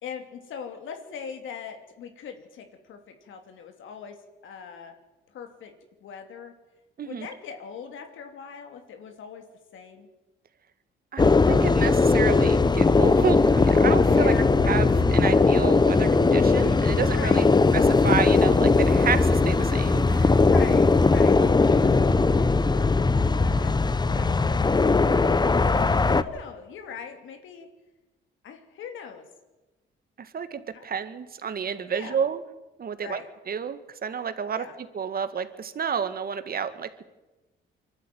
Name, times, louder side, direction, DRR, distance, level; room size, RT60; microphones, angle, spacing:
voice 1, 0.0-4.2 4.4-5.0 5.3-5.7 6.0-6.5 7.0-9.4 9.7-10.1 14.1-14.5 17.1-17.5 20.4-25.5 26.0-27.7 28.4-29.3 30.7-30.8 31.9-32.3 33.0-33.3 34.5-34.7, left 6 dB, 80° left, 5 dB, 2.9 m, -41 dB
voice 2, 11.1-14.3 14.7-17.5 17.7-20.4 25.7-25.8 30.2-32.4 32.8-33.2 33.5-34.6 34.9-37.0, right 7 dB, 50° right, 11 dB, 1.8 m, -30 dB
sound 1, 11.2-26.2, left 3 dB, 20° left, 0.9 m, -19 dB
24.0 x 12.5 x 9.4 m, 1.1 s
cardioid pair, 90°, 20 cm